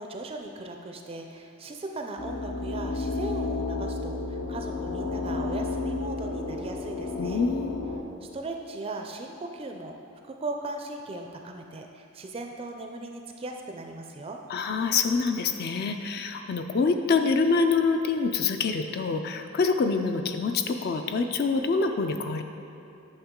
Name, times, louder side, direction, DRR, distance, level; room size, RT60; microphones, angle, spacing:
voice 1, 0.0-7.4 8.2-10.0 10.3-14.4, right 2 dB, 25° right, 3 dB, 0.4 m, -38 dB
sound 1, 2.2-8.0, left 3 dB, 80° left, 0.9 m, -32 dB
voice 2, 7.2-7.9 14.5-22.4, left 4 dB, 45° left, 6 dB, 0.3 m, -26 dB
8.9 x 6.3 x 3.7 m, 2.9 s
head